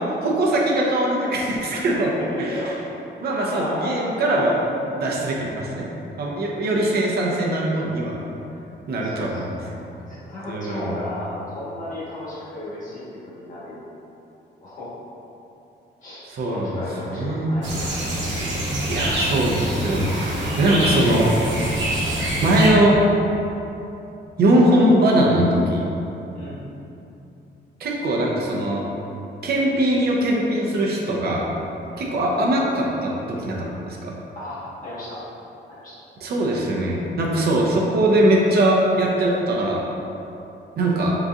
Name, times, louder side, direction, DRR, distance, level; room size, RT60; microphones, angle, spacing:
voice 1, 0.0-2.1 2.4-2.6 3.2-5.9 6.2-8.2 8.9-9.6 10.5-11.0 16.3-16.8 17.1-17.5 18.9-21.3 22.2-23.0 24.4-25.9 27.8-28.8 29.4-31.5 32.0-34.1 36.2-39.8 40.8-41.1, right 1 dB, 60° right, -3 dB, 0.6 m, -21 dB
voice 2, 1.9-2.9 3.4-4.2 9.0-9.7 10.1-13.8 14.6-15.0 16.0-18.1 26.3-26.6 31.9-32.1 34.3-35.2 35.7-36.0, left 1 dB, 45° left, -9 dB, 1.2 m, -34 dB
sound 1, 17.6-22.7, right 1 dB, 90° right, 1.0 m, -25 dB
3.9 x 3.8 x 2.4 m, 2.9 s
wide cardioid pair, 160°, 19 cm